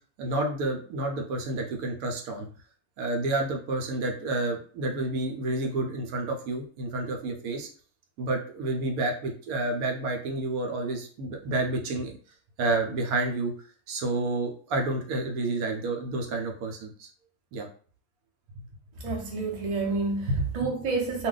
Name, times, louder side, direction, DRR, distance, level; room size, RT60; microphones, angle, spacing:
voice 1, 0.2-2.5 3.0-7.7 8.2-12.2 12.6-17.1 17.5-17.7 20.3-20.5, right 2 dB, 75° right, 1.0 m, -29 dB
voice 2, 19.0-21.3, right 3 dB, 40° right, 0.6 m, -29 dB
2.5 x 2.2 x 3.7 m
omnidirectional pair, 1.6 m